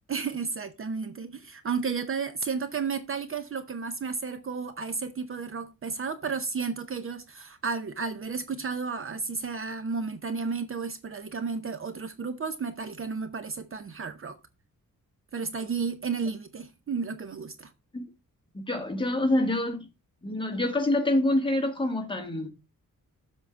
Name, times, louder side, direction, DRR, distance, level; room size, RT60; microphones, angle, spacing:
voice 1, 0.1-14.4 15.3-17.7, right 5 dB, 40° right, 0.7 m, -32 dB
voice 2, 18.5-19.9 20.2-22.5, left 1 dB, 15° left, 1.5 m, -26 dB
7.5 x 3.8 x 6.0 m
wide cardioid pair, 155°, 32 cm